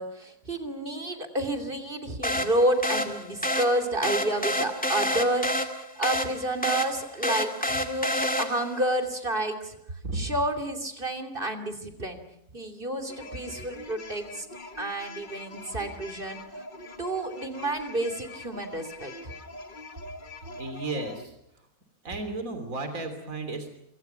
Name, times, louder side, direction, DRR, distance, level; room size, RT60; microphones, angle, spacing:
voice 1, 0.0-9.8 10.1-12.2 12.5-14.5 14.8-16.4 17.0-19.1, right 1 dB, 40° right, 8 dB, 3.2 m, -30 dB
sound 1, 2.2-8.8, left 1 dB, 5° left, 2.2 m, -29 dB
sound 2, 13.1-21.3, left 2 dB, 35° left, 1.7 m, -43 dB
voice 2, 20.6-21.3 22.0-23.7, right 2 dB, 75° right, 7 dB, 3.7 m, -33 dB
28.0 x 24.5 x 5.8 m, 0.78 s
omnidirectional pair, 1.4 m